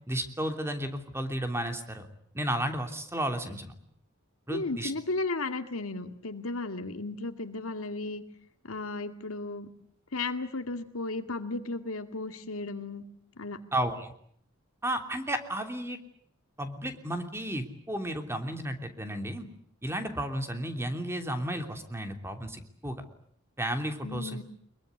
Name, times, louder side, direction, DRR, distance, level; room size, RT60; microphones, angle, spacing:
voice 1, 0.1-2.1 2.3-3.7 4.5-4.9 13.7-14.1 14.8-16.0 16.6-19.5 19.8-23.0 23.6-24.4, right 1 dB, 10° right, 6 dB, 3.1 m, -33 dB
voice 2, 4.5-8.2 8.6-9.7 10.1-13.1 13.4-13.6 24.0-24.4, left 3 dB, 80° left, 7 dB, 2.1 m, -34 dB
24.5 x 22.0 x 9.7 m, 0.65 s
head